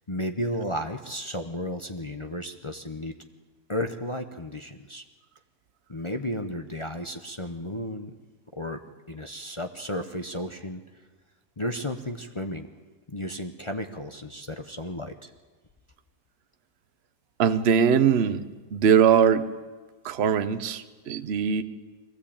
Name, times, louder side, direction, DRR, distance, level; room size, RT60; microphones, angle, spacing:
voice 1, 0.1-3.1 3.7-5.0 5.9-8.1 8.5-8.8 9.1-10.8 11.6-12.7 13.1-15.3, left 1 dB, 30° left, 5 dB, 0.6 m, -33 dB
voice 2, 17.4-18.4 18.7-19.4 20.0-21.6, right 7 dB, 45° right, 10 dB, 0.9 m, -21 dB
21.5 x 16.0 x 8.7 m, 1.3 s
omnidirectional pair, 1.8 m